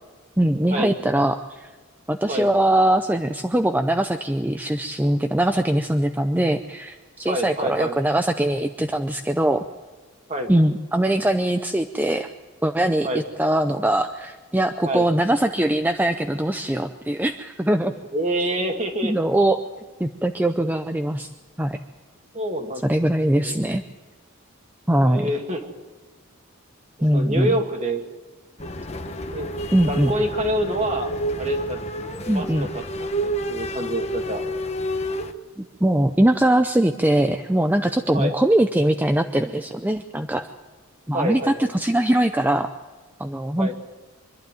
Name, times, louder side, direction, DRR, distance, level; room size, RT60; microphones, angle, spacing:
voice 1, 0.4-1.7 2.1-9.6 10.5-12.3 12.6-17.9 19.0-19.6 20.0-21.3 21.6-21.8 22.8-23.8 24.9-25.3 27.0-27.5 29.7-30.1 32.3-32.7 35.6-40.5 41.1-42.7 43.2-43.7, right 1 dB, 10° right, 7 dB, 0.6 m, -21 dB
voice 2, 7.3-8.0 10.3-10.5 13.0-13.2 14.8-15.1 17.9-19.1 22.3-22.9 23.4-23.6 25.0-25.8 27.1-28.0 29.3-29.5 29.9-31.8 32.3-32.7 33.0-34.4 38.1-38.4 41.1-41.7 43.6-43.7, right 1 dB, 35° right, 4 dB, 2.3 m, -27 dB
sound 1, 28.6-35.3, right 1 dB, 30° left, 1.1 m, -29 dB
25.0 x 12.0 x 9.2 m, 1.4 s
head